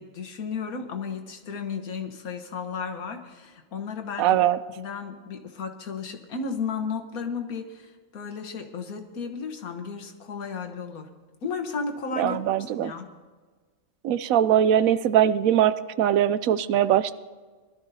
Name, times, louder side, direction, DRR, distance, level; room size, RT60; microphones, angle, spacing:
voice 1, 0.0-4.4 4.8-11.1 11.4-13.1, left 5 dB, 90° left, 4 dB, 1.6 m, -34 dB
voice 2, 4.2-4.6 12.2-12.9 14.0-17.1, right 10 dB, 80° right, 14 dB, 1.0 m, -21 dB
21.0 x 12.5 x 2.8 m, 1.4 s
omnidirectional pair, 1.5 m